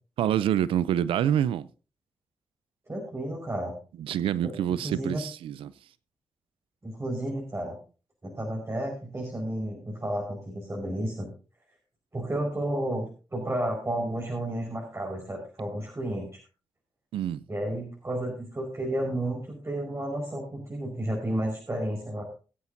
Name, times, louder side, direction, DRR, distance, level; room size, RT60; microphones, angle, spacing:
voice 1, 0.2-1.7 4.0-5.7 17.1-17.4, right 10 dB, 90° right, 0.5 m, -26 dB
voice 2, 2.9-3.7 4.4-4.5 4.8-5.2 6.8-7.8 8.2-11.3 12.1-16.3 17.5-22.2, right 1 dB, 30° right, 5.0 m, -32 dB
22.0 x 8.5 x 2.7 m
supercardioid pair, 50°, 9 cm